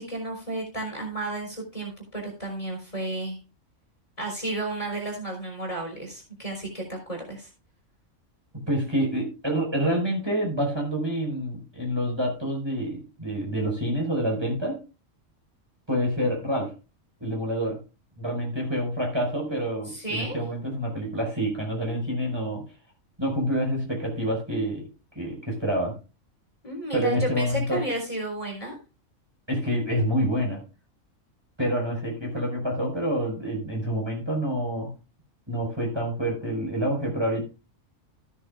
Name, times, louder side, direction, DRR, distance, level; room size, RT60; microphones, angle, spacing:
voice 1, 0.0-3.4 4.2-7.5 19.9-20.4 26.6-28.8, right 2 dB, 25° left, -1 dB, 4.2 m, -32 dB
voice 2, 8.7-14.8 15.9-16.7 17.2-17.8 18.2-22.6 23.2-24.9 25.2-26.0 26.9-27.8 29.5-30.6 31.6-34.9 35.5-37.5, equal, 20° right, -1 dB, 5.1 m, -27 dB
14.5 x 10.0 x 2.3 m, 0.31 s
omnidirectional pair, 1.4 m